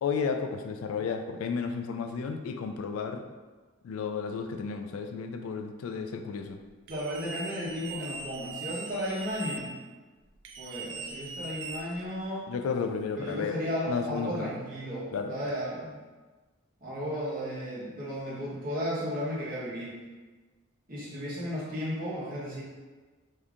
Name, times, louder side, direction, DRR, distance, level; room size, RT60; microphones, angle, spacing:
voice 1, 0.0-3.2 3.8-6.6 12.5-13.6 13.9-14.5 15.1-15.4, left 5 dB, 80° left, 6 dB, 0.3 m, -32 dB
voice 2, 6.9-9.7 10.6-12.5 13.2-16.0 16.8-19.9 20.9-22.6, equal, 40° right, -8 dB, 1.0 m, -34 dB
sound 1, 6.9-9.6 10.4-12.2, right 4 dB, 55° right, 0.4 m, -40 dB
2.7 x 2.4 x 3.4 m, 1.3 s
head